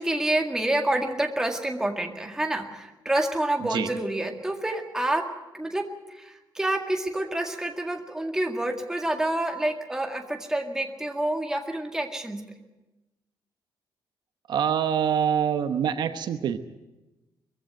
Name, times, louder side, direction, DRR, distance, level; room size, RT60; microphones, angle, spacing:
voice 1, 0.0-5.3 5.5-12.4, right 1 dB, 5° right, 3 dB, 1.9 m, -28 dB
voice 2, 14.5-16.6, right 8 dB, 60° right, 9 dB, 1.0 m, -25 dB
22.0 x 15.5 x 9.1 m, 1.1 s
cardioid pair, 155°, 9 cm